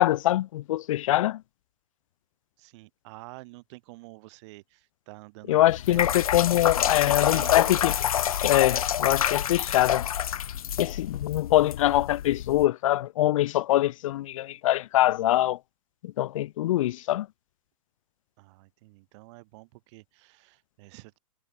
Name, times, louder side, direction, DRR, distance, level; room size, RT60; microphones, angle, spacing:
voice 1, 0.0-1.4 5.5-7.9 8.4-10.1 10.8-15.6 16.0-17.3, left 14 dB, 65° left, 1.0 m, -23 dB
voice 2, 2.6-6.2 6.9-7.9 18.4-21.2, right 24 dB, 55° right, 6.3 m, -48 dB
sound 1, 5.7-12.6, left 10 dB, 90° left, 0.5 m, -28 dB
hypercardioid pair, 120°, 18 cm